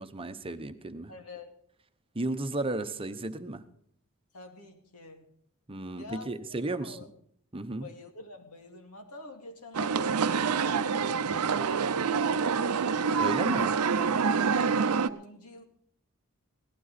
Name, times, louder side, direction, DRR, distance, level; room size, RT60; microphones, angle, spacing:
voice 1, 0.0-1.1 2.1-3.6 5.7-7.0 7.5-7.9 13.2-13.7, right 2 dB, 25° right, 9 dB, 0.9 m, -34 dB
voice 2, 1.1-1.5 4.3-5.3 6.0-7.1 7.8-12.8 13.4-13.7 14.5-15.6, left 3 dB, 90° left, 3 dB, 2.4 m, -47 dB
sound 1, 9.7-15.1, right 5 dB, 85° right, 0.6 m, -26 dB
17.5 x 12.5 x 4.1 m, 0.64 s
head